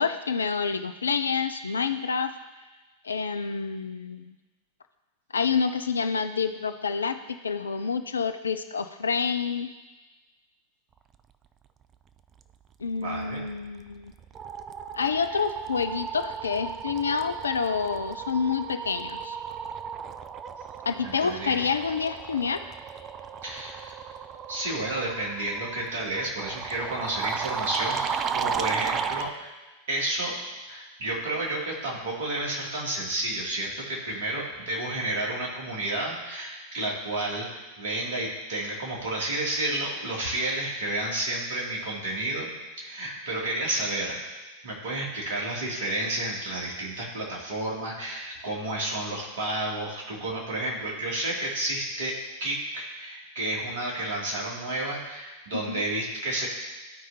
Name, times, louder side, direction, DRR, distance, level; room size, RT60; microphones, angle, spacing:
voice 1, 0.0-2.3 3.0-4.3 5.3-9.7 12.8-14.1 14.9-19.4 20.8-22.6 55.5-55.9, left 5 dB, 75° left, 9 dB, 0.5 m, -28 dB
voice 2, 13.0-13.4 21.0-21.6 23.4-23.9 24.5-29.5 29.9-30.3 30.7-42.5 42.8-44.2 44.6-56.5, right 1 dB, 55° right, -3 dB, 2.5 m, -31 dB
sound 1, 13.5-13.8 14.1-29.3, right 7 dB, 30° right, 0.3 m, -35 dB
14.5 x 4.9 x 2.8 m, 1.2 s
figure-of-eight pair, 90°, 0 cm